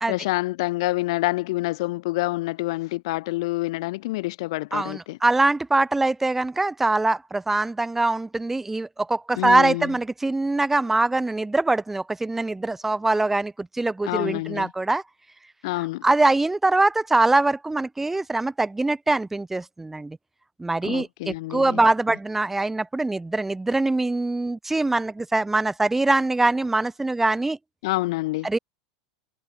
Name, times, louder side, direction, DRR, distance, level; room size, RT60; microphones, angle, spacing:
voice 1, 0.1-5.2 9.4-9.9 14.0-14.7 15.6-16.1 20.8-21.9 27.8-28.5, left 20 dB, 70° left, 3.5 m, -27 dB
voice 2, 4.7-15.0 16.0-20.2 20.6-27.6 28.4-28.6, right 2 dB, 10° right, 2.0 m, -23 dB
hypercardioid pair, 100°, 3 cm